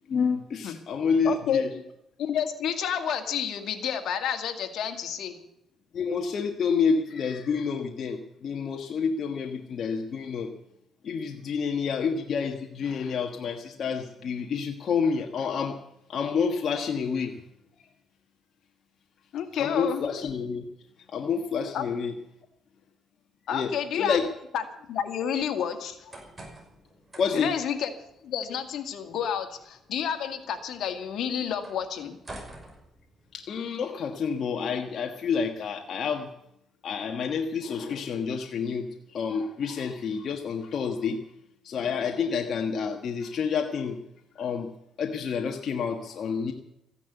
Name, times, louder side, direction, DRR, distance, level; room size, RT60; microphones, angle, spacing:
voice 1, 0.1-1.7 5.9-10.5 11.0-15.8 16.1-17.4 19.6-20.6 21.1-22.1 23.5-24.3 27.2-27.5 33.3-36.3 36.8-41.2 41.6-44.0 44.3-44.7 45.0-46.5, left 6 dB, 60° left, 3 dB, 1.5 m, -29 dB
voice 2, 1.2-1.6 2.2-5.4 19.3-20.0 21.7-21.9 23.5-24.2 24.5-24.6 24.9-26.1 27.3-27.9 28.2-32.2, left 8 dB, 75° left, 6 dB, 2.1 m, -30 dB
sound 1, 25.8-33.6, right 1 dB, 20° right, 5.7 m, -50 dB
15.5 x 10.5 x 8.2 m, 0.80 s
cardioid pair, 90°, 0 cm